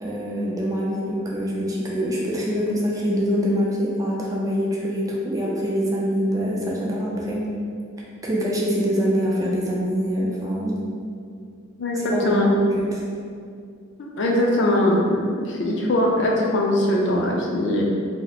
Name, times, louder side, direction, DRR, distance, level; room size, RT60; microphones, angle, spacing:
voice 1, 0.0-7.4 8.2-10.8 12.1-13.0, equal, 15° right, -4 dB, 0.4 m, -24 dB
voice 2, 11.8-12.5 14.0-17.8, left 1 dB, 60° left, -2 dB, 0.5 m, -21 dB
2.8 x 2.1 x 3.9 m, 2.3 s
head